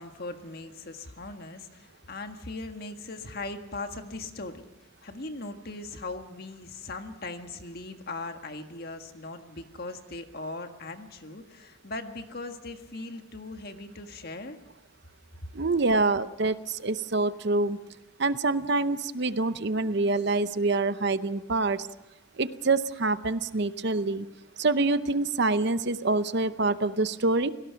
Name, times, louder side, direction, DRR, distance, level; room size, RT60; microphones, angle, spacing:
voice 1, 0.0-14.6 15.4-15.5, left 2 dB, 45° left, 6 dB, 1.7 m, -39 dB
voice 2, 15.5-17.8 18.2-21.9 22.4-24.3 24.6-27.5, right 3 dB, 50° right, 13 dB, 0.7 m, -26 dB
30.0 x 17.5 x 5.8 m, 0.96 s
head